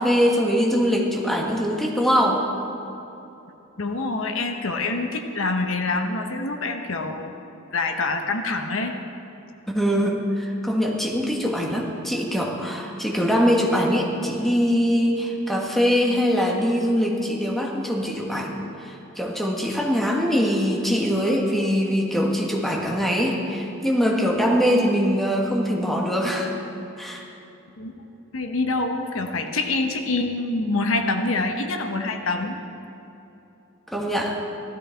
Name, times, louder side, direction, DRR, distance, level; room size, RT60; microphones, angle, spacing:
voice 1, 0.0-2.4 9.7-18.5 18.8-26.5 27.0-27.2 33.9-34.4, equal, ahead, -2 dB, 1.4 m, -22 dB
voice 2, 3.8-7.3 7.7-8.9 27.8-28.0 28.3-32.6, left 3 dB, 70° left, 5 dB, 1.0 m, -26 dB
16.0 x 13.0 x 4.5 m, 2.9 s
head